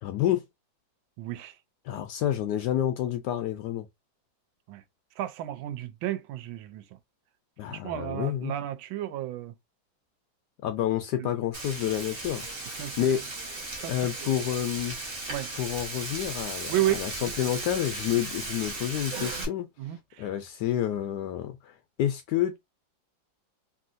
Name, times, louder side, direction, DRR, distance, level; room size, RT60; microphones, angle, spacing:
voice 1, 0.0-0.4 1.9-3.9 7.6-8.5 10.6-12.4 12.7-13.2 13.9-15.0 15.6-19.7 20.2-21.7 22.0-22.6, left 11 dB, 75° left, 1.0 m, -29 dB
voice 2, 1.2-1.5 4.7-4.8 5.2-6.8 7.7-9.5 11.2-11.3 12.8-13.1 13.8-14.1 15.3-15.5 16.7-17.3 19.8-20.3, right 13 dB, 85° right, 1.4 m, -32 dB
Frying (food), 11.5-19.4, right 2 dB, 40° right, 1.2 m, -36 dB
3.1 x 2.7 x 2.5 m
omnidirectional pair, 2.1 m